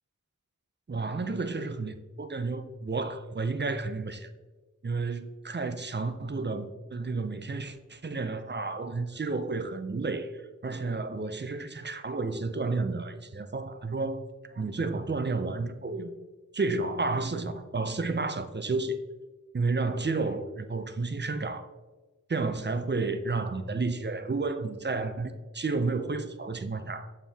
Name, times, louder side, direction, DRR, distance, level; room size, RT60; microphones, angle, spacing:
voice 1, 0.9-4.3 4.8-14.2 14.5-16.1 16.5-19.0 19.5-21.6 22.3-27.1, right 3 dB, 35° right, 0.5 m, -31 dB
7.1 x 4.4 x 3.5 m
wide cardioid pair, 45°, 31 cm